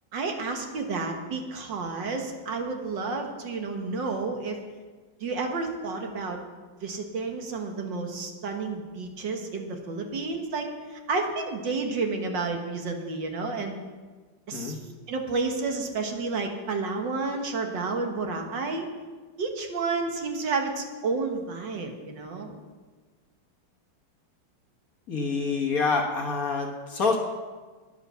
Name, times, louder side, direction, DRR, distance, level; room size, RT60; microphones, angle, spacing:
voice 1, 0.1-4.6 5.2-6.4 6.8-13.8 14.5-14.8 15.1-18.9 19.4-22.5, right 3 dB, 65° right, 4 dB, 2.0 m, -31 dB
voice 2, 25.1-27.2, left 4 dB, 50° left, 2 dB, 1.5 m, -26 dB
10.5 x 9.7 x 6.8 m, 1.4 s
omnidirectional pair, 2.3 m